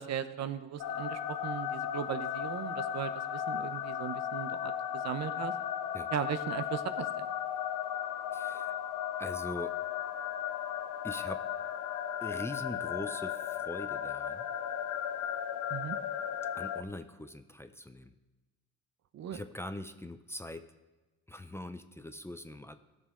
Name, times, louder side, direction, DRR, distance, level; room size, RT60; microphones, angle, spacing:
voice 1, 0.0-5.5 6.1-7.3 15.7-16.0 19.1-19.4, right 9 dB, 60° right, 12 dB, 0.7 m, -37 dB
sound 1, 0.8-16.8, left 9 dB, 90° left, 0.6 m, -36 dB
voice 2, 8.3-8.7 9.2-9.8 11.0-11.5 12.2-14.5 16.6-18.1 19.3-20.6 21.3-22.7, left 1 dB, 10° left, 9 dB, 0.5 m, -42 dB
15.5 x 6.6 x 3.6 m, 1.1 s
cardioid pair, 90°, 30 cm